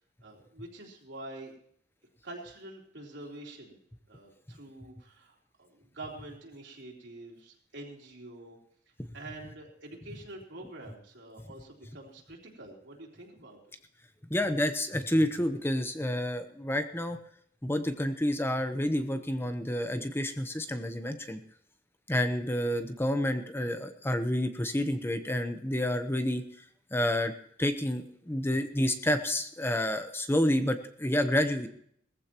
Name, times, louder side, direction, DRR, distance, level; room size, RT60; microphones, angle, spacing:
voice 1, 0.2-1.5 2.2-3.8 4.1-8.6 9.1-13.6, right 2 dB, 70° right, -1 dB, 3.6 m, -46 dB
voice 2, 14.3-17.2 17.6-21.4 22.1-26.4 26.9-27.3 27.6-31.7, left 1 dB, 10° left, 8 dB, 0.8 m, -29 dB
19.5 x 15.0 x 3.0 m, 0.64 s
head